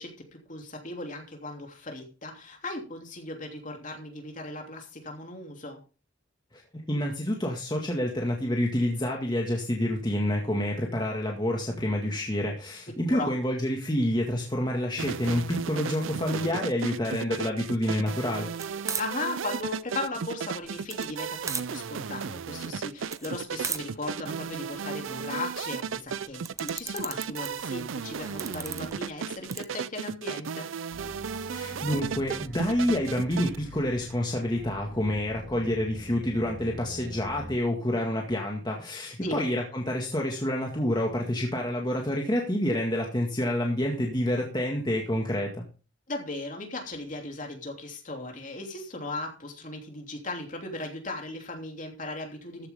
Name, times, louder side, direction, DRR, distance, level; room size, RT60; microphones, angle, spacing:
voice 1, 0.0-5.8 13.1-13.3 19.0-30.7 39.2-39.5 46.1-52.7, left 2 dB, 40° left, 3 dB, 3.0 m, -37 dB
voice 2, 6.9-18.5 31.5-45.6, left 1 dB, 20° left, 0 dB, 2.0 m, -28 dB
sound 1, 15.0-33.6, right 6 dB, 85° right, 0.5 m, -35 dB
sound 2, 18.6-29.6, right 5 dB, 15° right, 0.8 m, -40 dB
sound 3, 30.9-37.6, left 1 dB, 55° right, 7.1 m, -44 dB
14.5 x 9.7 x 3.7 m, 0.33 s
head